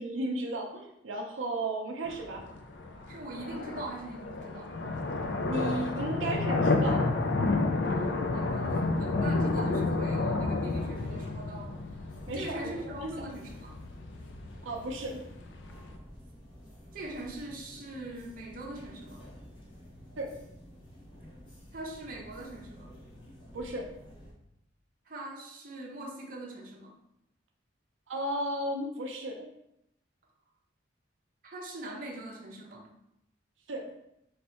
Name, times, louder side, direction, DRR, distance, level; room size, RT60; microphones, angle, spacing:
voice 1, 0.0-2.4 5.5-7.1 12.3-13.1 14.6-15.2 20.2-20.3 23.5-23.9 28.1-29.5 33.7-33.9, right 1 dB, 85° right, 1 dB, 0.6 m, -34 dB
sound 1, 2.0-16.0, left 3 dB, 65° left, 0.4 m, -31 dB
voice 2, 3.1-4.7 7.9-11.8 12.3-13.8 16.9-19.2 21.7-22.9 25.1-27.0 31.4-32.9, right 1 dB, 45° right, -1 dB, 0.7 m, -42 dB
sound 2, 10.7-24.3, equal, 25° left, 0.9 m, -51 dB
3.2 x 2.7 x 4.2 m, 0.82 s
head